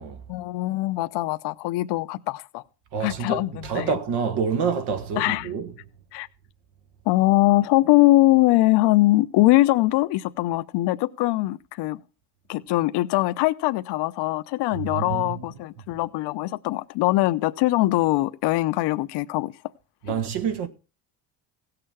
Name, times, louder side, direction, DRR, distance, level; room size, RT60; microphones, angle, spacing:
voice 1, 0.3-2.6 3.0-3.9 5.2-5.5 6.1-6.3 7.1-12.0 12.5-19.5 20.1-20.2, left 18 dB, 75° left, 0.7 m, -22 dB
voice 2, 2.9-5.7 14.7-15.5 20.0-20.7, right 6 dB, 70° right, 1.9 m, -27 dB
16.5 x 6.8 x 5.7 m
cardioid pair, 125°, 41 cm